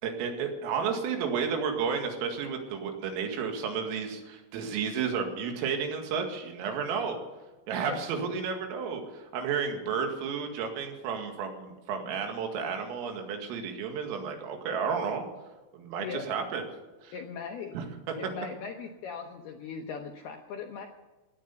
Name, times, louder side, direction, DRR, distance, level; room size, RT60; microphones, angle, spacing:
voice 1, 0.0-7.2 7.7-15.3 15.7-16.6 17.0-17.1 17.7-18.2, right 6 dB, 80° right, 4 dB, 4.7 m, -32 dB
voice 2, 17.1-17.8 18.2-20.9, left 6 dB, 75° left, 3 dB, 2.3 m, -39 dB
17.0 x 11.0 x 7.0 m, 1.1 s
omnidirectional pair, 5.8 m